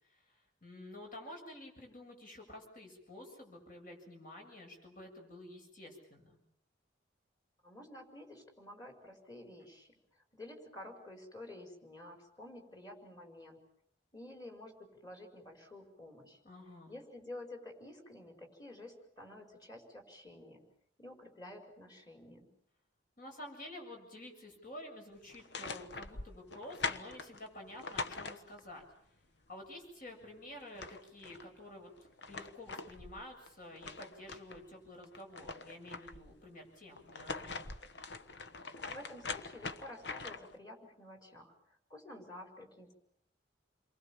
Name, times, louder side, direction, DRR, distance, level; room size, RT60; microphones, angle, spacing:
voice 1, 0.0-6.4 16.4-16.9 23.2-28.9 29.5-37.7, left 1 dB, 45° left, 2 dB, 7.4 m, -50 dB
voice 2, 7.6-13.6 14.1-16.4 16.9-20.7 21.0-22.5 38.7-42.9, left 1 dB, 20° left, 5 dB, 5.4 m, -51 dB
sound 1, 25.3-28.8 30.3-30.4 30.6-31.5 32.0-34.6 35.0-36.4 37.0-40.6, left 4 dB, 60° left, 1.3 m, -43 dB
29.0 x 23.5 x 7.4 m, 0.67 s
head